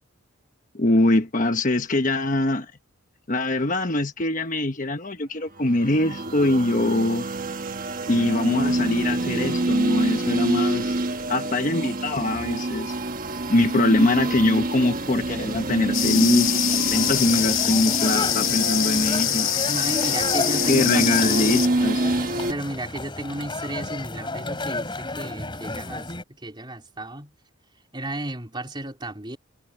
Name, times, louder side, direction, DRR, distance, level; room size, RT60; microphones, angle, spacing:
voice 1, 0.7-2.7 3.3-7.3 8.1-10.9 11.3-13.0 13.5-19.5 20.7-22.1, left 1 dB, 40° left, 1.2 m, -23 dB
sound 1, 5.6-22.5, right 2 dB, 40° right, 1.3 m, -27 dB
sound 2, 15.9-21.7, left 13 dB, 65° left, 0.9 m, -24 dB
sound 3, 16.9-26.2, left 2 dB, 20° left, 4.7 m, -33 dB
voice 2, 19.7-21.7 22.4-27.3 27.9-29.4, right 1 dB, 20° right, 3.7 m, -33 dB
head